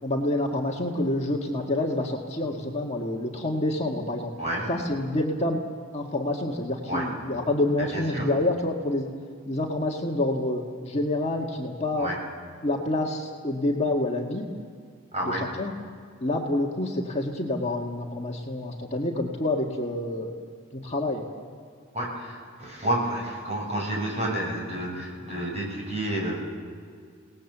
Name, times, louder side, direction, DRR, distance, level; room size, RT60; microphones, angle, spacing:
voice 1, 0.0-4.3 4.7-5.6 5.9-9.1 9.4-12.1 12.6-14.4 15.2-15.7 16.2-20.3 20.7-21.2, left 1 dB, 30° left, 0 dB, 1.8 m, -27 dB
voice 2, 7.9-8.3 12.0-12.1 15.1-15.4 21.9-26.3, right 1 dB, 30° right, -2 dB, 7.4 m, -30 dB
29.0 x 19.0 x 7.3 m, 2.1 s
head